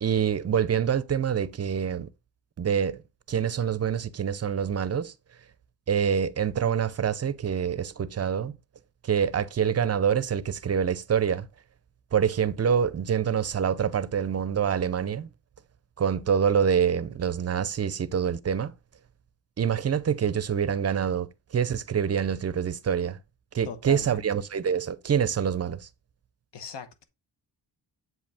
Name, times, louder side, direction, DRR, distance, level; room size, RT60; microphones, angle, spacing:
voice 1, 0.0-2.1 2.6-3.0 3.3-5.1 5.9-8.6 9.0-11.5 12.1-15.3 16.0-18.7 19.6-23.2 23.5-25.9, right 7 dB, 35° right, 0.5 m, -26 dB
voice 2, 23.6-24.2 26.5-27.0, left 5 dB, 75° left, 1.1 m, -39 dB
7.7 x 5.2 x 3.4 m
wide cardioid pair, 155°, 43 cm